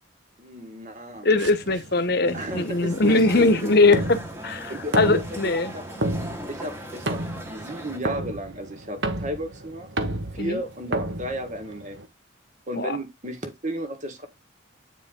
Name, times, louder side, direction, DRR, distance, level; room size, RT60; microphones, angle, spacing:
voice 1, 0.4-1.3 2.2-3.7 4.7-5.4 5.7-5.8 6.5-7.2 7.5-9.9 10.3-12.0 12.7-14.3, right 1 dB, 40° right, 1.6 m, -34 dB
voice 2, 1.2-4.2 4.4-5.7 10.4-10.6 12.8-13.0, left 3 dB, 50° left, 1.1 m, -21 dB
sound 1, 1.4-12.1, right 1 dB, 65° right, 1.3 m, -32 dB
sound 2, 2.2-8.0, equal, 15° right, 1.5 m, -39 dB
8.9 x 4.5 x 3.8 m
head